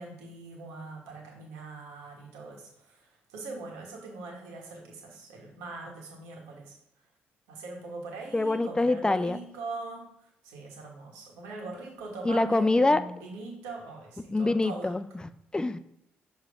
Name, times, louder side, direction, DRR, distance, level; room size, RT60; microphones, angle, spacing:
voice 1, 0.0-3.0 3.3-6.7 7.5-10.0 10.4-14.9, right 3 dB, 90° right, 0 dB, 1.5 m, -41 dB
voice 2, 8.3-9.4 12.2-13.0 14.3-15.8, left 2 dB, 15° left, 14 dB, 0.4 m, -25 dB
6.6 x 3.1 x 4.9 m, 0.81 s
supercardioid pair, 55°, 5 cm